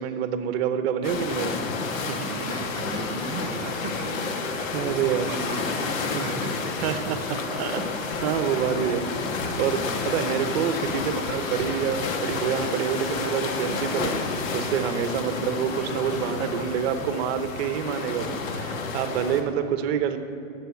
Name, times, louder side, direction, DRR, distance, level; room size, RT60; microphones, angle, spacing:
voice 1, 0.0-1.6 2.1-2.3 4.7-5.3 6.1-6.4 6.8-7.9 8.2-9.3 9.6-14.1 14.5-20.2, right 8 dB, 50° right, 9 dB, 1.0 m, -27 dB
sound 1, 1.0-19.4, left 4 dB, 75° left, 1.6 m, -30 dB
voice 2, 2.0-6.8 14.6-14.8, right 6 dB, 30° right, 2 dB, 0.7 m, -38 dB
11.0 x 7.8 x 8.3 m, 2.7 s
hypercardioid pair, 130°, 40 cm